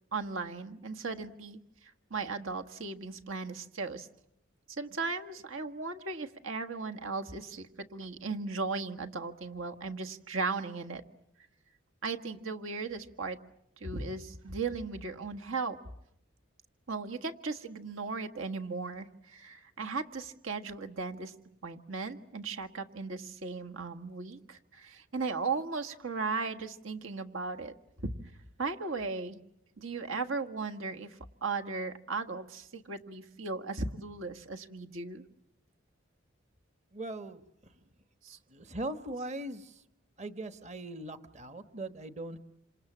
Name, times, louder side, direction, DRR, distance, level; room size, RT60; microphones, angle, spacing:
voice 1, 0.1-1.6 2.1-4.1 4.7-11.0 12.0-13.4 13.8-15.8 16.9-21.3 21.6-27.7 28.0-28.1 28.6-29.4 29.8-35.2 38.2-38.4, right 4 dB, 80° right, 5 dB, 1.7 m, -37 dB
voice 2, 36.9-37.4 38.5-39.8 40.2-42.4, right 2 dB, 35° right, 10 dB, 1.2 m, -40 dB
28.5 x 27.0 x 7.4 m, 0.78 s
head